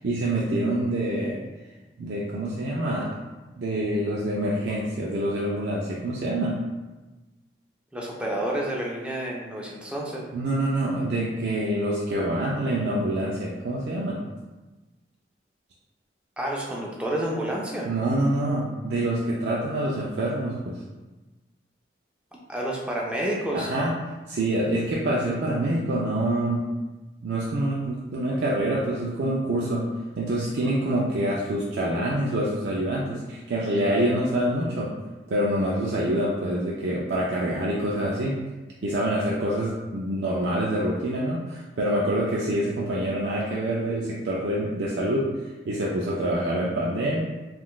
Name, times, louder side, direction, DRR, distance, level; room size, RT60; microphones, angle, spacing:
voice 1, 0.0-1.4 2.0-3.1 3.6-6.6 10.3-14.2 17.8-20.8 23.5-23.9 24.3-26.7 27.2-29.8 30.2-34.9 35.3-38.4 38.8-47.2, right 1 dB, 70° right, -5 dB, 0.4 m, -26 dB
voice 2, 7.9-10.2 16.4-17.9 22.5-23.7, right 1 dB, 5° right, -3 dB, 0.4 m, -29 dB
3.6 x 2.4 x 2.3 m, 1.2 s
head